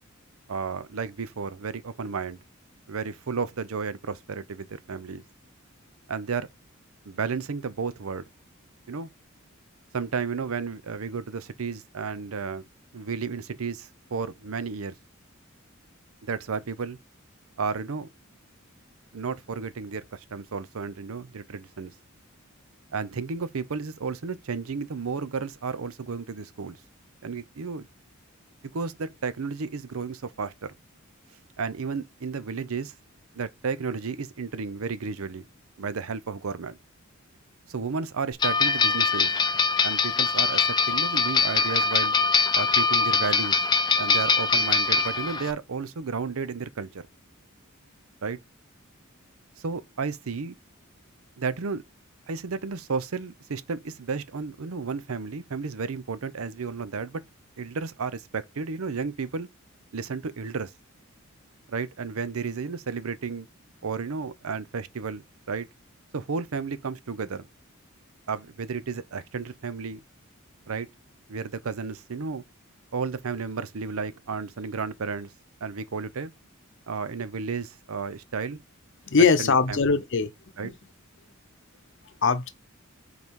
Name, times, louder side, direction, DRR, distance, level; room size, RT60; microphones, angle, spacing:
voice 1, 0.5-2.4 2.9-5.2 6.1-6.5 7.1-8.3 8.9-9.1 9.9-12.7 12.9-14.9 16.2-17.0 17.6-18.1 19.1-21.9 22.9-26.8 27.2-27.9 28.6-30.7 31.6-32.9 33.4-35.4 35.8-36.8 37.7-39.3 39.8-42.2 42.5-43.6 44.0-47.0 48.2-48.4 49.6-50.6 51.4-51.8 52.3-57.2 57.6-59.5 59.9-60.7 61.7-63.5 63.8-65.7 66.1-67.5 68.3-70.0 70.7-70.9 71.3-72.4 72.9-75.3 75.6-76.3 76.9-78.6 79.4-79.8 80.6-80.7, right 5 dB, 85° right, 0.6 m, -32 dB
sound 1, 38.4-45.5, left 4 dB, 20° left, 0.5 m, -23 dB
voice 2, 79.1-80.3 80.6-80.7 82.2-82.5, left 5 dB, 60° left, 0.8 m, -21 dB
5.3 x 4.0 x 4.6 m
head